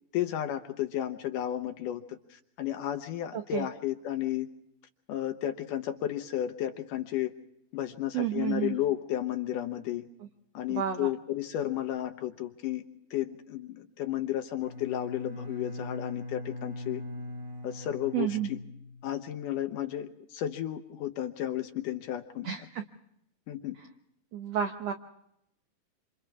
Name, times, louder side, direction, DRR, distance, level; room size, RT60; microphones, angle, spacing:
voice 1, 0.1-4.5 5.1-7.3 7.7-10.1 10.5-12.8 13.1-17.0 17.6-18.6 19.0-22.5 23.5-23.8, left 12 dB, 70° left, 7 dB, 2.3 m, -33 dB
voice 2, 3.3-3.7 8.1-8.7 10.7-11.1 18.1-18.5 22.4-22.6 24.3-24.9, right 10 dB, 80° right, 5 dB, 1.4 m, -30 dB
Bowed string instrument, 14.6-19.3, left 2 dB, 25° right, 2.7 m, -41 dB
27.5 x 27.0 x 3.6 m, 0.77 s
omnidirectional pair, 4.4 m